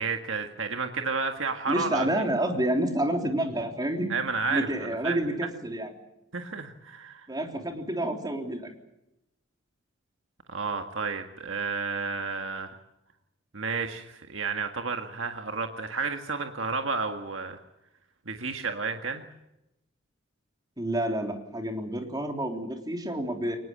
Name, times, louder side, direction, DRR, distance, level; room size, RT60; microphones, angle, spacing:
voice 1, 0.0-2.1 4.1-5.2 6.3-7.3 10.5-12.7 13.5-17.6 18.3-19.2, right 4 dB, 70° right, 5 dB, 1.7 m, -31 dB
voice 2, 1.7-4.1 4.5-5.9 7.3-8.7 20.8-23.6, right 1 dB, 20° right, 3 dB, 3.5 m, -29 dB
23.0 x 20.0 x 8.8 m, 0.88 s
head